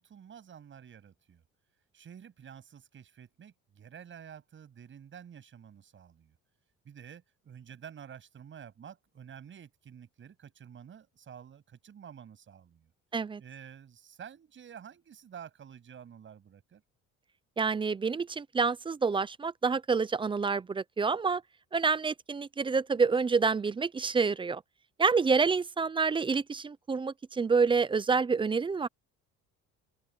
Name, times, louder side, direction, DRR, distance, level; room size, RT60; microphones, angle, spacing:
voice 1, 0.0-1.4 1.9-6.4 6.8-12.9 13.4-16.8, right 8 dB, 40° right, 7.7 m, -50 dB
voice 2, 17.6-21.4 21.7-24.6 25.0-28.9, right 5 dB, 15° right, 0.5 m, -28 dB
open air
cardioid pair, 125°, 29 cm